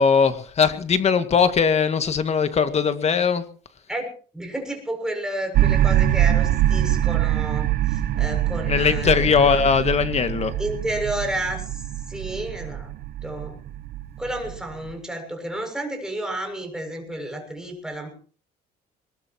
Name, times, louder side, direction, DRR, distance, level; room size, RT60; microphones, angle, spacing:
voice 1, 0.0-3.4 8.7-10.5, left 6 dB, 40° left, 10 dB, 2.1 m, -20 dB
voice 2, 4.3-9.6 10.6-12.9 13.2-13.6 14.2-18.1, right 1 dB, 5° right, 3 dB, 6.9 m, -31 dB
sound 1, 5.5-14.9, right 12 dB, 65° right, 0.8 m, -24 dB
22.0 x 20.0 x 3.0 m, 0.41 s
cardioid pair, 110°, 17 cm